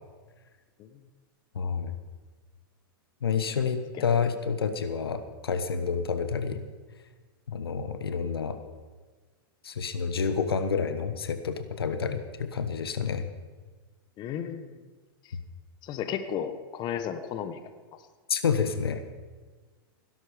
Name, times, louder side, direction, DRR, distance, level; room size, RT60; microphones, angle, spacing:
voice 1, 1.5-2.0 3.2-6.6 7.5-8.6 9.6-13.3 18.3-19.0, left 6 dB, 90° left, 10 dB, 1.3 m, -29 dB
voice 2, 14.2-14.7 15.8-17.6, left 8 dB, 35° left, 10 dB, 1.2 m, -33 dB
17.5 x 12.0 x 5.1 m, 1.4 s
hypercardioid pair, 115°, 12 cm